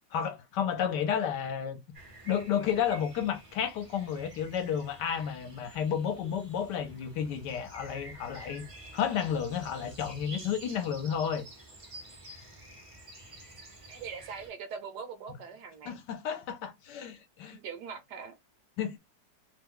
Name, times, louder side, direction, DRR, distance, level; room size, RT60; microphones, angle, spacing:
voice 1, 0.1-1.8 2.3-8.6 8.9-11.4 15.9-17.6 18.8-19.0, left 8 dB, 70° left, 1.2 m, -31 dB
sound 1, 1.9-14.5, right 2 dB, 35° right, 0.5 m, -50 dB
voice 2, 13.9-16.0 17.5-18.4, right 6 dB, 75° right, 1.2 m, -42 dB
3.0 x 2.2 x 3.6 m
omnidirectional pair, 2.0 m